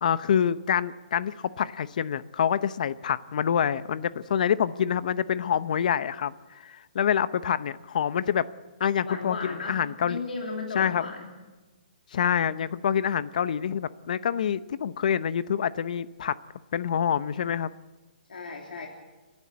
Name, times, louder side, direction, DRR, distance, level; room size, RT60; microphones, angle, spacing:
voice 1, 0.0-6.3 6.6-8.5 8.8-10.2 10.7-11.0 12.1-16.4 16.7-17.7, left 8 dB, 60° left, 16 dB, 0.8 m, -26 dB
voice 2, 9.1-11.3 18.3-18.9, left 4 dB, 80° left, 0 dB, 3.3 m, -35 dB
30.0 x 12.0 x 8.2 m, 1.2 s
hypercardioid pair, 155°, 5 cm